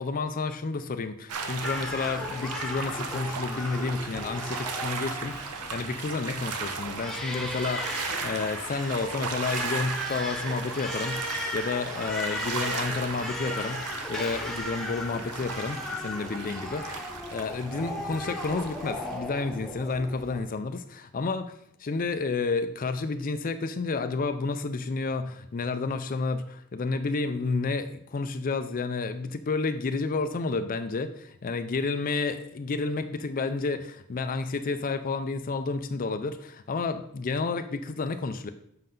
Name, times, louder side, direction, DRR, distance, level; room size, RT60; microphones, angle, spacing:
voice 1, 0.0-21.5 21.8-38.5, left 4 dB, 40° left, 9 dB, 0.4 m, -31 dB
sound 1, 1.3-19.2, right 5 dB, 85° right, 0.8 m, -37 dB
Crying sobbing, 1.6-20.4, left 1 dB, ahead, 0.7 m, -36 dB
7.6 x 5.4 x 3.8 m, 0.74 s
head